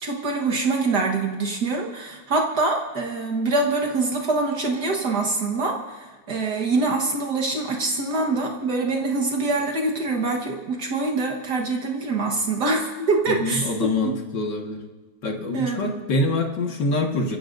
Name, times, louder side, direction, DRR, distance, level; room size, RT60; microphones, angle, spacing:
voice 1, 0.0-14.1 15.5-15.9, right 3 dB, 65° right, 0 dB, 2.0 m, -24 dB
voice 2, 13.3-14.8 15.2-17.4, left 2 dB, 70° left, 2 dB, 2.3 m, -25 dB
30.0 x 15.5 x 2.6 m, 1.3 s
omnidirectional pair, 2.0 m